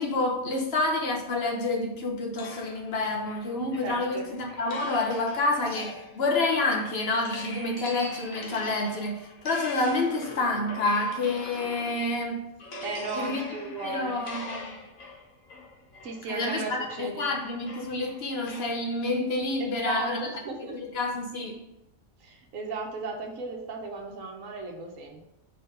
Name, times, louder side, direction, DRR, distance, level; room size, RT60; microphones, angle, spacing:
voice 1, 0.0-12.5 13.1-13.5 13.8-14.7 16.3-20.2 20.7-21.6, left 2 dB, 50° left, 1 dB, 1.2 m, -28 dB
sound 1, 2.4-12.2 12.6-18.8, left 2 dB, 75° left, 1.5 m, -43 dB
voice 2, 3.8-4.3 12.8-14.2 16.0-17.3 19.6-20.9 22.2-25.2, right 3 dB, 70° right, 1 dB, 1.3 m, -35 dB
4.6 x 4.1 x 5.4 m, 0.88 s
omnidirectional pair, 1.4 m